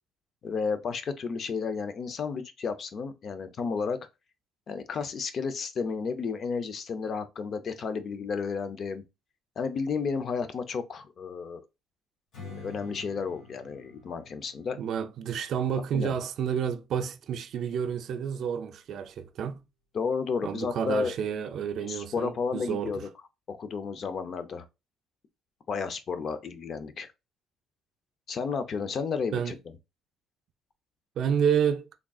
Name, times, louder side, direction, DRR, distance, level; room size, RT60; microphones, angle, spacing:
voice 1, 0.4-4.0 4.7-9.0 9.6-11.7 12.4-14.8 15.9-16.1 19.9-21.1 21.9-23.1 23.5-24.6 25.7-27.1 28.3-29.6, left 5 dB, 45° left, 0.5 m, -32 dB
Strum, 12.3-17.6, left 3 dB, 70° left, 2.4 m, -50 dB
voice 2, 14.8-19.6 20.4-23.0 29.3-29.6 31.2-31.9, right 8 dB, 55° right, 0.4 m, -30 dB
3.6 x 3.6 x 2.3 m
cardioid pair, 135°, 0 cm